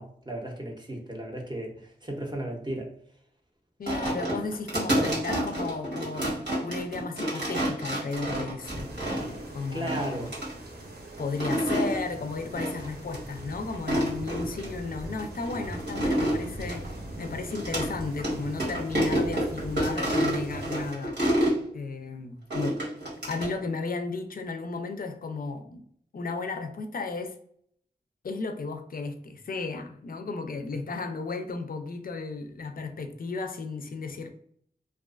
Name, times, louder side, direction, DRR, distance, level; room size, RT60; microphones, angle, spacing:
voice 1, 0.0-2.9 9.7-10.4, right 1 dB, 25° right, 1 dB, 0.6 m, -35 dB
voice 2, 3.8-6.4 6.6-8.9 9.5-10.3 11.2-16.8 17.2-21.2 21.7-22.8 23.2-25.8 26.1-27.3 28.2-34.3, left 3 dB, 55° left, 6 dB, 0.4 m, -34 dB
sound 1, 3.9-9.4 9.9-10.5 11.2-12.0 12.6-12.9 13.1-13.2 13.7-14.7 15.2-17.9 18.2-18.3 18.6-21.6 22.5-23.5, equal, 85° right, 1.0 m, -28 dB
sound 2, 8.6-20.9, right 1 dB, 65° right, 0.7 m, -41 dB
2.4 x 2.3 x 2.3 m, 0.64 s
cardioid pair, 50°, 18 cm